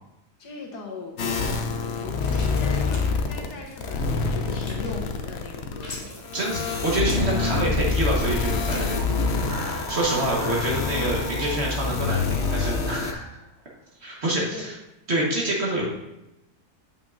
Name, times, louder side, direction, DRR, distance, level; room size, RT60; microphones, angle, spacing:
voice 1, 0.4-6.3 10.1-10.4 14.3-14.7, left 3 dB, 80° left, 0 dB, 1.7 m, -39 dB
sound 1, 1.2-3.5 3.8-13.1, left 4 dB, 60° left, 0.7 m, -26 dB
sound 2, 2.1-12.9, left 1 dB, 30° left, 1.2 m, -43 dB
voice 2, 6.3-9.1 9.9-13.2 14.0-14.7 15.1-15.9, right 1 dB, 45° right, -3 dB, 1.5 m, -26 dB
sound 3, 8.8-13.4, right 1 dB, 85° right, 3.2 m, -38 dB
7.5 x 5.8 x 2.5 m, 0.90 s
omnidirectional pair, 1.7 m